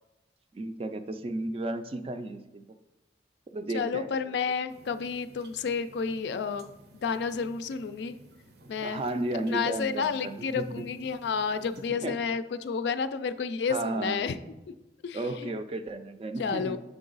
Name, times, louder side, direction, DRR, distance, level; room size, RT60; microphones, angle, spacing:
voice 1, 0.5-2.6 3.5-4.1 8.8-10.8 11.9-12.1 13.7-14.2 15.1-16.8, right 2 dB, 35° right, 10 dB, 0.4 m, -33 dB
voice 2, 3.7-6.7 6.9-8.2 8.7-9.0 9.5-14.4 15.0-15.5 16.4-16.8, left 5 dB, 70° left, 11 dB, 0.3 m, -31 dB
sound 1, 4.7-11.9, right 1 dB, 65° right, 0.7 m, -55 dB
6.9 x 3.7 x 3.9 m, 1.0 s
head